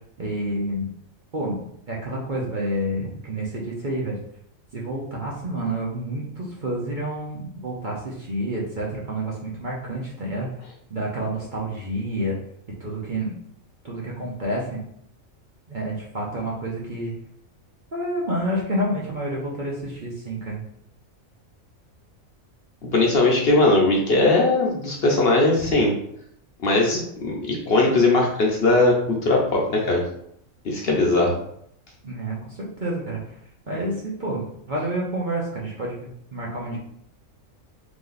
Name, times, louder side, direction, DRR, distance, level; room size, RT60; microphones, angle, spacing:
voice 1, 0.2-0.9 1.3-4.2 4.7-10.5 10.9-12.4 12.8-13.4 13.8-14.8 15.7-17.1 17.9-20.6 32.0-33.2 33.7-36.8, right 1 dB, 45° right, -4 dB, 0.7 m, -29 dB
voice 2, 22.8-25.9 26.6-30.0 30.6-31.3, left 2 dB, 55° left, -1 dB, 0.8 m, -19 dB
3.2 x 3.0 x 3.9 m, 0.70 s
omnidirectional pair, 1.4 m